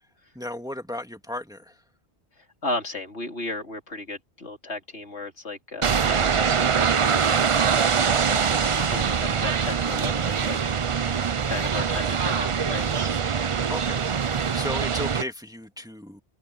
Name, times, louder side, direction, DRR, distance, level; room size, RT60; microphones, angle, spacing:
voice 1, 0.3-1.8 13.7-14.1 14.5-16.2, left 1 dB, 5° right, 2.2 m, -34 dB
voice 2, 2.6-13.1, left 2 dB, 80° left, 3.5 m, -35 dB
sound 1, 5.8-15.2, right 6 dB, 40° right, 0.5 m, -23 dB
omnidirectional pair, 1.1 m